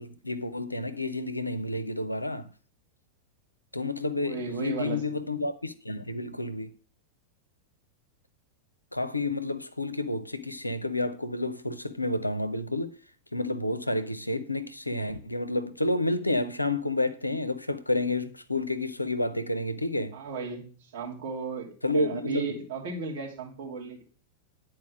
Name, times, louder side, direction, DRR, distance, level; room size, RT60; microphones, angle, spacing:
voice 1, 0.0-2.5 3.7-6.7 8.9-12.9 13.3-20.1 21.8-22.6, left 2 dB, 85° left, 0.6 m, -30 dB
voice 2, 4.2-5.0 20.1-21.7 21.9-24.0, right 5 dB, 55° right, 2.8 m, -35 dB
10.5 x 4.4 x 6.1 m
figure-of-eight pair, 90°, 0 cm